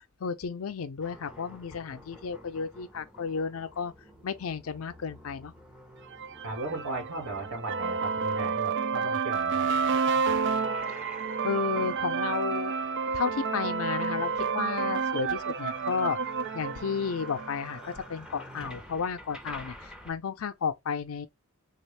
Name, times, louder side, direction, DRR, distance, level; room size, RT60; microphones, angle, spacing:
voice 1, 0.2-3.9 4.2-5.5 10.9-11.1 11.4-12.7 13.1-16.2 16.5-21.3, left 6 dB, 80° left, 0.5 m, -32 dB
sound 1, 1.0-9.0 10.0-20.1, left 1 dB, 5° right, 0.6 m, -49 dB
sound 2, 6.1-17.9, right 5 dB, 60° right, 0.4 m, -30 dB
voice 2, 6.4-9.7, right 2 dB, 80° right, 1.9 m, -37 dB
3.5 x 2.4 x 3.2 m
head